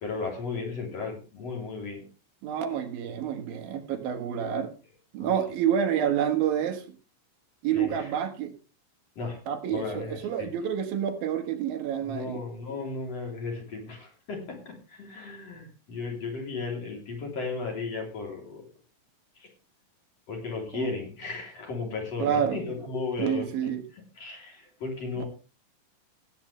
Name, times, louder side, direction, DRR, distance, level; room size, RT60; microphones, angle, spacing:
voice 1, 0.0-2.1 5.2-5.3 7.7-8.1 9.2-9.4 9.7-10.5 12.1-18.6 19.4-19.5 20.3-23.7 24.2-25.2, left 4 dB, 45° left, 4.1 m, -35 dB
voice 2, 2.4-4.7 5.1-6.8 7.6-8.5 9.5-12.4 20.7-20.9 22.2-22.6 23.2-23.8 25.2-25.3, right 9 dB, 90° right, 3.2 m, -28 dB
17.5 x 8.9 x 3.3 m
omnidirectional pair, 4.0 m